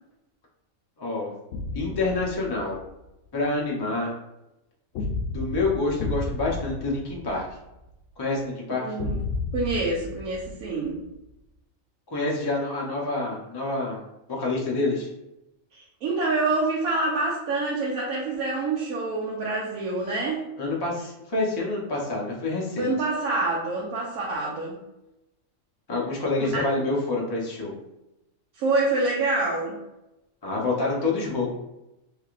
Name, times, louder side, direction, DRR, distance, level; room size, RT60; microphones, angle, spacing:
voice 1, 1.0-1.3 1.7-2.8 3.3-4.1 5.3-7.5 8.2-8.9 12.1-14.0 14.3-15.1 20.6-22.9 25.9-27.7 30.4-31.5, left 2 dB, 30° left, -3 dB, 0.4 m, -27 dB
sound 1, 1.5-2.9 5.0-7.9 9.0-11.1, left 3 dB, 70° left, 0.9 m, -32 dB
voice 2, 8.8-9.2 9.5-11.0 15.7-20.4 22.8-24.8 26.4-26.5 28.6-29.8, right 3 dB, 85° right, -4 dB, 1.1 m, -26 dB
3.4 x 3.3 x 2.4 m, 0.92 s
omnidirectional pair, 1.4 m